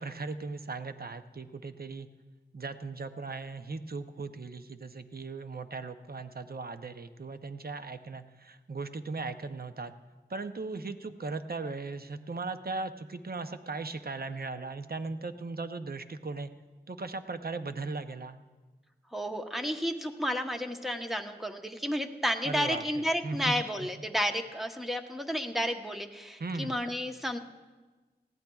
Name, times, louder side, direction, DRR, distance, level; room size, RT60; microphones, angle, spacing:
voice 1, 0.0-2.1 2.5-9.9 10.3-16.5 16.9-18.4 22.4-22.8 23.2-23.6 23.8-23.9 26.4-26.8, right 3 dB, 60° right, 9 dB, 0.6 m, -38 dB
voice 2, 19.1-27.4, equal, ahead, 4 dB, 0.9 m, -32 dB
19.5 x 15.0 x 2.3 m, 1.3 s
wide cardioid pair, 50°, 18 cm